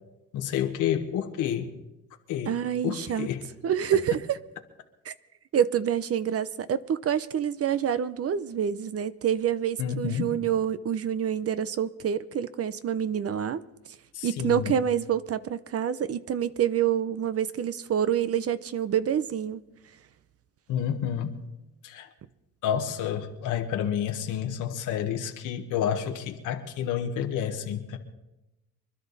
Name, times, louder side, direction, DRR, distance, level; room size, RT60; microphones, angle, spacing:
voice 1, 0.3-1.7 2.3-2.6 2.8-3.4 9.8-10.3 14.1-14.7 20.7-21.4 21.8-22.1 22.6-28.0, left 9 dB, 90° left, 1.4 m, -29 dB
voice 2, 2.5-3.3 3.6-4.4 5.1-5.2 5.5-13.6 14.2-19.6, right 9 dB, 50° right, 0.7 m, -27 dB
25.0 x 11.5 x 4.1 m
cardioid pair, 90°, 30 cm